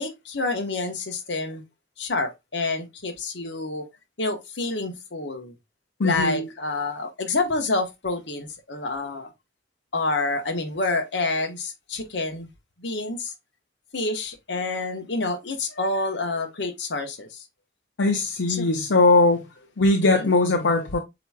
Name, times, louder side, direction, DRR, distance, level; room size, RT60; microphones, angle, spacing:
voice 1, 0.0-1.6 2.0-3.9 4.2-5.5 6.0-9.3 9.9-12.5 12.8-13.3 13.9-17.4 18.5-18.7 20.0-20.3, left 3 dB, 70° left, 1.2 m, -28 dB
voice 2, 6.0-6.4 18.0-19.4 19.8-21.0, left 2 dB, 90° left, 0.8 m, -20 dB
7.6 x 3.0 x 2.3 m
head